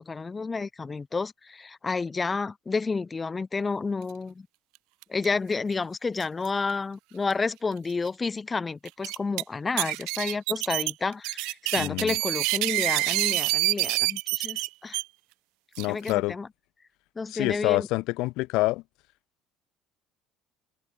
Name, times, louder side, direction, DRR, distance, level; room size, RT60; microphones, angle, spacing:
voice 1, 0.0-4.5 5.1-15.0 15.9-16.5 17.1-17.9, left 4 dB, 20° left, 3.3 m, -30 dB
sound 1, 5.0-5.2 5.5-5.6 6.2-6.5 7.3-7.4 7.9-8.0 8.9-9.4 9.8-15.0 15.7-16.1, right 26 dB, 80° right, 2.6 m, -27 dB
voice 2, 11.8-12.2 15.8-16.4 17.3-18.8, left 21 dB, 75° left, 3.0 m, -27 dB
cardioid pair, 130°, 0 cm